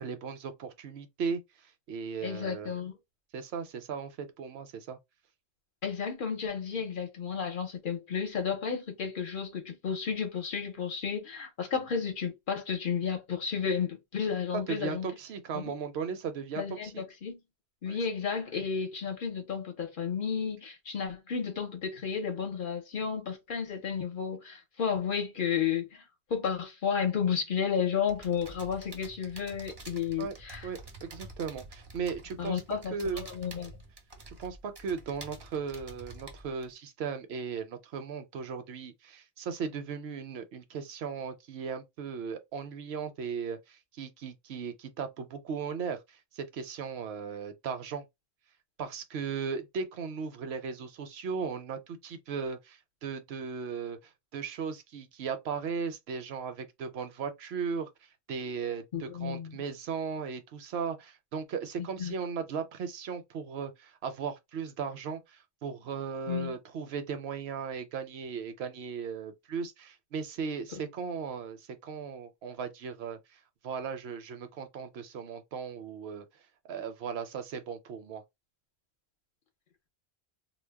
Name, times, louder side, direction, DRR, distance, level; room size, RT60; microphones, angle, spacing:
voice 1, 0.0-1.4 1.9-2.7 3.3-5.0 14.5-17.0 17.9-18.0 30.2-30.3 30.6-33.3 34.3-46.0 46.3-48.0 48.8-54.0 54.3-57.9 58.3-73.2 73.6-76.2 76.7-78.2, right 6 dB, 70° right, 0.8 m, -37 dB
voice 2, 2.2-2.9 5.8-15.1 15.5-15.7 16.6-17.4 17.8-26.0 26.3-30.7 32.4-33.7 58.9-59.6 61.8-62.1 66.3-66.6 70.7-70.8, left 7 dB, 55° left, 0.8 m, -32 dB
sound 1, 28.1-36.7, right 2 dB, 35° right, 0.4 m, -49 dB
2.2 x 2.0 x 3.3 m
omnidirectional pair, 1.1 m